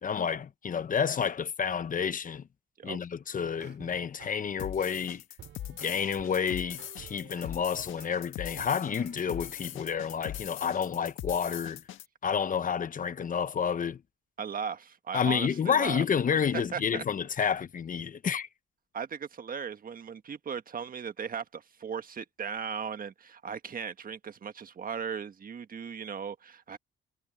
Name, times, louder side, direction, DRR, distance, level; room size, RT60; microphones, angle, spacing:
voice 1, 0.0-2.4 2.8-5.2 5.8-11.8 12.2-14.0 15.1-18.5, left 7 dB, 45° left, 1.0 m, -30 dB
sound 1, 3.2-8.1 8.6-9.6, right 11 dB, 75° right, 5.2 m, -52 dB
sound 2, 4.6-12.1, left 12 dB, 80° left, 1.6 m, -41 dB
voice 2, 14.4-16.0 16.3-17.0 18.9-26.8, right 6 dB, 45° right, 1.6 m, -37 dB
cardioid pair, 90°, 20 cm